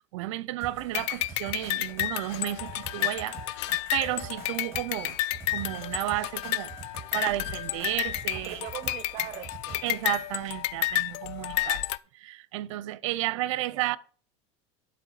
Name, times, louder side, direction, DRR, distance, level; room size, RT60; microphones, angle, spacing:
voice 1, 0.1-3.6 3.9-5.2 5.5-6.7 7.1-8.7 9.8-11.9 12.1-14.0, right 16 dB, 75° right, 0.6 m, -32 dB
sound 1, 0.6-10.2 11.6-11.7, right 5 dB, 15° right, 3.4 m, -45 dB
sound 2, 0.9-12.0, left 16 dB, 65° left, 0.4 m, -31 dB
voice 2, 8.4-9.8 13.3-14.0, right 14 dB, 40° right, 0.7 m, -41 dB
11.0 x 4.5 x 5.5 m
supercardioid pair, 155°, 16 cm